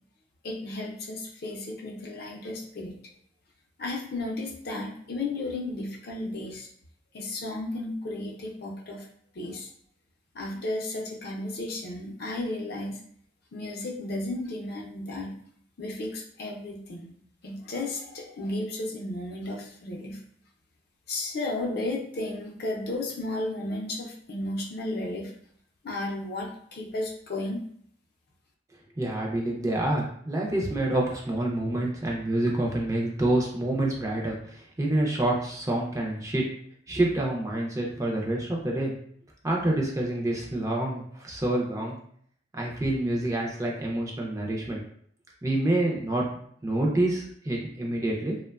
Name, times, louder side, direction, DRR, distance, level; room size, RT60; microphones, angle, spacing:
voice 1, 0.4-3.0 3.8-6.7 7.1-9.1 9.3-9.7 10.3-13.0 13.5-15.4 15.8-17.1 17.4-20.2 21.1-25.3 25.8-27.7, left 2 dB, 55° left, -1 dB, 0.5 m, -33 dB
voice 2, 29.0-36.4 36.9-38.9 39.4-42.0 42.5-44.8 45.4-46.2 46.6-48.4, right 1 dB, 15° right, -2 dB, 0.4 m, -27 dB
2.9 x 2.1 x 2.3 m, 0.63 s
head